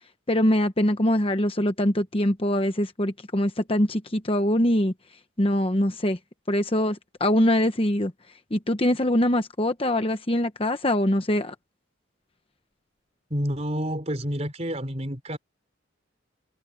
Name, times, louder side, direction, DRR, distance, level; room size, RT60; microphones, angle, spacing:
voice 1, 0.3-4.9 5.4-6.2 6.5-8.1 8.5-11.5, left 1 dB, 25° left, 1.0 m, -23 dB
voice 2, 13.3-15.4, equal, 30° right, 4.8 m, -29 dB
head